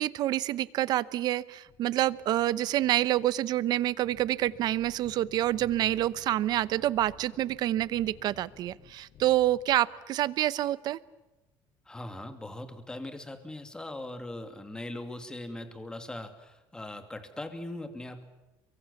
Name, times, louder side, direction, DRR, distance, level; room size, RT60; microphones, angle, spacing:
voice 1, 0.0-11.0, right 14 dB, 50° right, 18 dB, 0.8 m, -27 dB
sound 1, 1.7-10.0, left 6 dB, 45° left, 5.7 m, -55 dB
voice 2, 11.9-18.2, left 1 dB, 10° left, 7 dB, 2.5 m, -40 dB
29.0 x 24.0 x 7.2 m, 1.0 s
cardioid pair, 150°, 9 cm